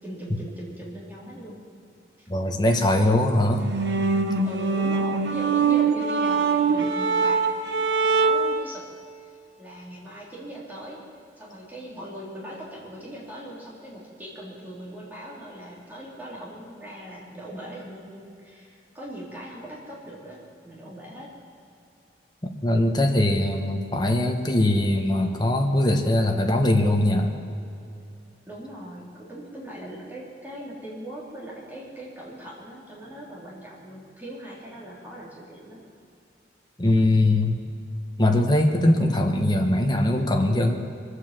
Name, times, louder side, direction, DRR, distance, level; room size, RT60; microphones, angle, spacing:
voice 1, 0.0-1.6 2.2-2.3 4.4-7.4 8.2-8.9 9.2-9.3 9.6-11.0 11.4-21.3 28.5-35.8, right 1 dB, 10° right, -6 dB, 3.4 m, -40 dB
voice 2, 2.3-3.6 22.6-27.3 36.8-37.6 38.2-40.8, left 1 dB, 25° left, 2 dB, 1.3 m, -21 dB
sound 1, 3.6-8.6, right 5 dB, 80° right, 1.1 m, -23 dB
23.0 x 8.2 x 7.6 m, 2.6 s
head